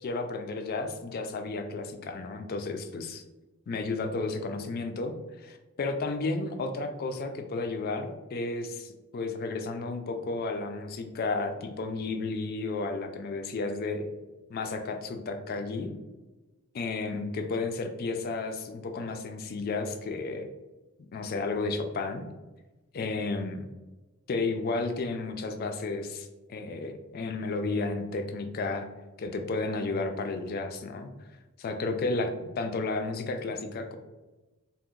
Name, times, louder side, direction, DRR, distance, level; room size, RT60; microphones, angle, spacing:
voice 1, 0.0-3.2 3.7-14.1 14.5-15.9 16.7-20.5 21.0-22.2 22.9-23.7 24.3-28.9 29.2-31.1 31.6-34.0, left 3 dB, 45° left, 6 dB, 0.3 m, -32 dB
2.8 x 2.1 x 3.6 m, 1.1 s
head